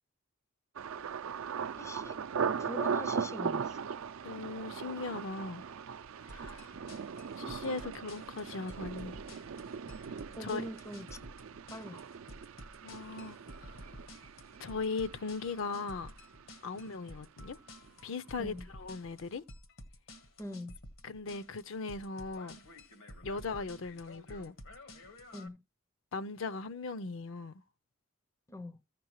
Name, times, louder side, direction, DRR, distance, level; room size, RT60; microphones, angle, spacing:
Thunder, 0.7-16.5 16.8-17.4 17.8-18.1, right 6 dB, 75° right, 0.4 m, -39 dB
voice 1, 1.8-2.2 2.5-3.8 10.3-11.2 11.7-12.1 18.4-18.7 20.4-20.8 25.3-25.6 28.5-28.8, left 1 dB, 15° left, 0.4 m, -43 dB
voice 2, 4.2-5.6 6.2-6.7 7.4-9.2 10.4-10.6 12.8-13.8 14.6-16.2 16.6-17.6 18.0-19.4 21.0-22.6 23.2-24.5 26.1-27.6, left 4 dB, 70° left, 0.5 m, -39 dB
sound 1, 6.3-25.5, left 1 dB, 90° left, 1.5 m, -51 dB
15.0 x 6.0 x 3.1 m
head